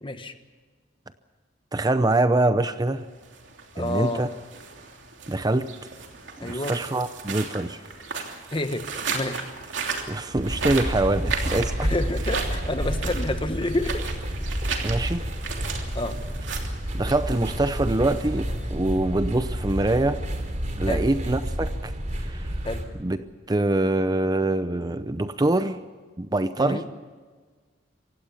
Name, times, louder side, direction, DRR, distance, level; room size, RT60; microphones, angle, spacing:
voice 1, 0.0-0.3 3.7-4.2 6.4-6.7 8.5-8.8 9.1-9.4 11.8-14.1 14.4-14.6 15.9-16.1 20.9-21.0 22.6-22.8 26.6-26.8, left 2 dB, 25° left, 9 dB, 1.3 m, -29 dB
voice 2, 1.7-3.1 3.8-4.3 5.3-5.7 6.4-7.8 10.1-11.9 14.8-15.3 16.9-20.2 20.8-22.5 23.0-23.2 23.5-25.8 26.2-26.8, right 2 dB, 20° right, 11 dB, 0.6 m, -24 dB
sound 1, 3.1-18.8, right 5 dB, 75° right, 3.0 m, -35 dB
sound 2, 10.3-22.9, equal, 40° right, 3.0 m, -30 dB
26.5 x 16.5 x 7.0 m, 1.5 s
head